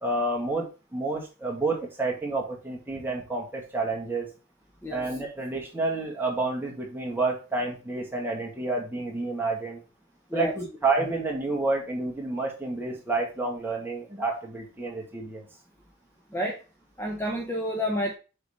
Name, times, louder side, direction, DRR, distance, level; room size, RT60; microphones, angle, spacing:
voice 1, 0.0-4.3 4.9-9.8 10.3-15.5, right 3 dB, 10° right, -1 dB, 2.0 m, -29 dB
voice 2, 16.3-16.6 17.0-18.1, equal, 10° left, 0 dB, 1.0 m, -29 dB
6.6 x 4.0 x 5.1 m, 0.33 s
head